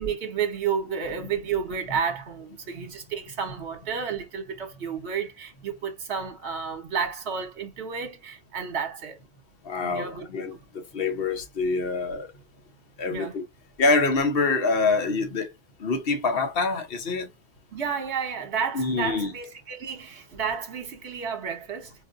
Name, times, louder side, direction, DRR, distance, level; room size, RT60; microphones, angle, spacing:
voice 1, 0.0-9.2 9.8-10.3 13.1-13.4 17.7-21.9, right 6 dB, 65° right, 1.4 m, -31 dB
voice 2, 9.6-12.3 13.0-13.4 13.8-15.5 15.8-17.3 18.7-19.3, left 3 dB, 55° left, 1.1 m, -25 dB
4.6 x 2.6 x 2.5 m
omnidirectional pair, 1.3 m